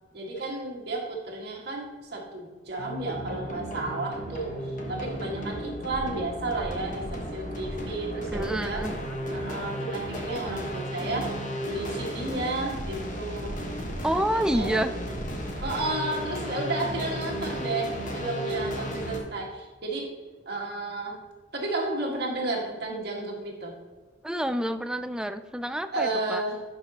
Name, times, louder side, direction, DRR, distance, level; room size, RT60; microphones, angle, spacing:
voice 1, 0.1-8.9 9.3-11.4 11.6-13.6 14.3-15.2 15.6-20.2 20.5-21.2 21.5-23.8 25.9-26.6, right 2 dB, 60° right, -1 dB, 1.8 m, -32 dB
sound 1, 2.8-19.2, equal, 45° left, 1.3 m, -34 dB
voice 2, 8.3-9.0 14.0-14.9 24.2-26.4, right 1 dB, 5° right, 10 dB, 0.3 m, -28 dB
11.5 x 5.1 x 2.9 m, 1.4 s
head